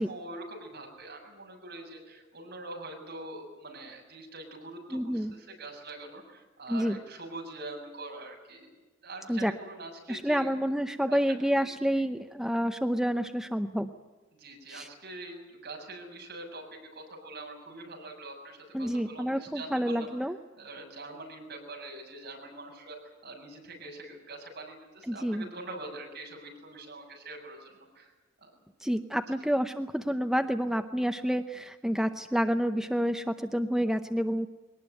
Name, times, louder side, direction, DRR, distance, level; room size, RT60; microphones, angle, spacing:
voice 1, 0.0-8.7 9.0-10.5 11.1-11.2 14.4-20.1 20.6-23.0 23.2-28.1 28.4-28.5 29.3-29.4, right 2 dB, 55° right, 1 dB, 7.1 m, -44 dB
voice 2, 4.9-5.3 6.7-7.0 9.3-9.5 10.1-13.9 14.7-14.9 18.7-20.4 25.1-25.5 28.8-34.5, equal, 5° right, 7 dB, 0.7 m, -29 dB
22.5 x 19.0 x 9.2 m, 1.3 s
head